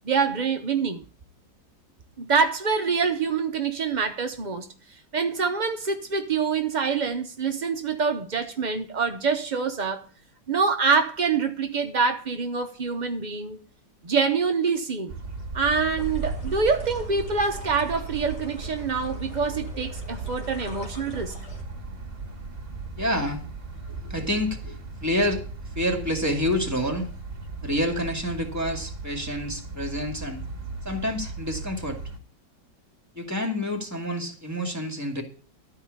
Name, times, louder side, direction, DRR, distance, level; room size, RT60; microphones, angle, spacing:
voice 1, 0.0-1.0 2.2-4.7 5.1-10.1 10.5-13.6 14.0-15.1 15.5-21.3, right 5 dB, 70° right, 0.4 m, -25 dB
sound 1, 15.1-32.2, right 3 dB, 30° right, 1.8 m, -37 dB
sound 2, 16.0-21.6, right 3 dB, 60° left, 3.1 m, -39 dB
voice 2, 23.0-23.4 23.9-25.4 25.7-27.1 27.6-30.4 30.8-32.0 33.1-35.2, left 1 dB, 10° right, 2.3 m, -28 dB
12.5 x 4.8 x 8.3 m
omnidirectional pair, 2.0 m